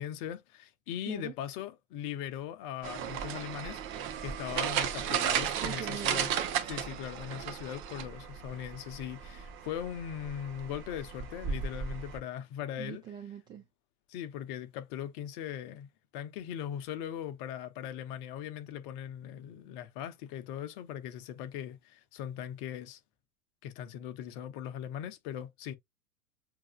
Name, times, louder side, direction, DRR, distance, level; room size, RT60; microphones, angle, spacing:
voice 1, 0.0-3.8 4.2-6.3 6.7-13.0 14.1-15.9 16.1-23.0 23.6-25.8, left 10 dB, 35° left, 0.9 m, -39 dB
sound 1, 2.8-12.2, right 8 dB, 30° right, 0.8 m, -35 dB
voice 2, 5.6-6.3 12.8-13.6, right 9 dB, 10° right, 0.4 m, -42 dB
7.3 x 2.9 x 2.3 m
figure-of-eight pair, 95°, 43 cm